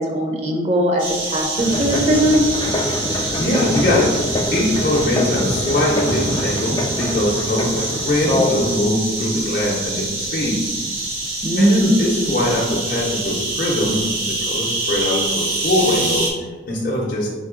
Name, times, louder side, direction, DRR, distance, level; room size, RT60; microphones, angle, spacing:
voice 1, 0.0-2.5 11.4-12.0, right 1 dB, 35° right, 1 dB, 0.6 m, -19 dB
sound 1, 1.0-16.3, right 2 dB, 85° right, 1.4 m, -26 dB
sound 2, 1.6-8.8, left 1 dB, 25° left, 0.3 m, -25 dB
voice 2, 3.1-4.1 4.5-10.7 11.6-16.3 16.7-17.3, left 1 dB, 45° left, -5 dB, 0.7 m, -21 dB
4.0 x 3.2 x 3.7 m, 1.3 s
head